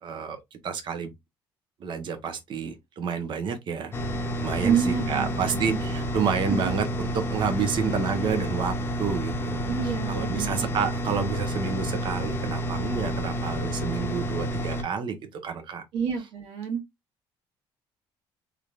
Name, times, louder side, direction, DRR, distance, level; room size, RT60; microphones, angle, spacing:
voice 1, 0.0-1.1 1.8-3.9 4.4-15.8, right 6 dB, 55° right, 1.0 m, -30 dB
sound 1, 3.9-14.8, equal, 25° left, 0.8 m, -30 dB
voice 2, 4.6-5.6 9.7-10.6 15.9-16.8, right 7 dB, 90° right, 1.7 m, -28 dB
3.7 x 3.3 x 2.4 m
cardioid pair, 110°, 10 cm